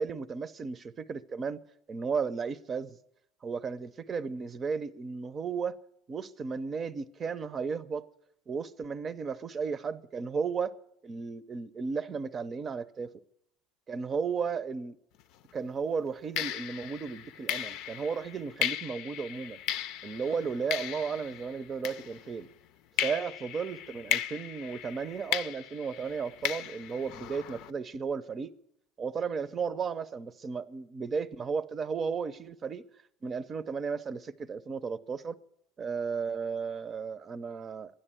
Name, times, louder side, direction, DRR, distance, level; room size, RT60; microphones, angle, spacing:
voice 1, 0.0-1.6 1.9-3.0 3.4-5.8 6.1-8.0 8.5-10.7 11.0-13.1 13.9-15.0 15.5-19.6 20.0-22.5 23.0-28.5 29.0-32.8 33.2-35.4 35.8-37.9, right 5 dB, 30° right, 0.7 m, -34 dB
sound 1, 15.2-15.4 16.4-22.5 23.0-27.7, left 10 dB, 70° left, 0.5 m, -36 dB
12.0 x 10.0 x 9.0 m
supercardioid pair, 105°, 0 cm